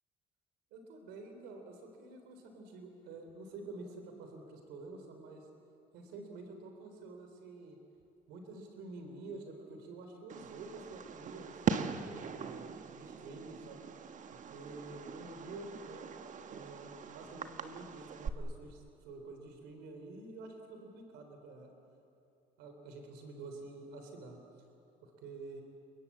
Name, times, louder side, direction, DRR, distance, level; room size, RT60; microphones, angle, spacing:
voice 1, 0.7-5.5 5.9-7.8 8.3-11.5 12.0-13.8 14.3-16.0 16.5-21.7 22.6-24.4 25.0-25.6, right 3 dB, 90° right, 5 dB, 3.7 m, -48 dB
Fireworks, 10.3-18.3, right 7 dB, 50° right, 1.4 m, -41 dB
29.5 x 22.5 x 8.5 m, 2.6 s
cardioid pair, 110°, 17 cm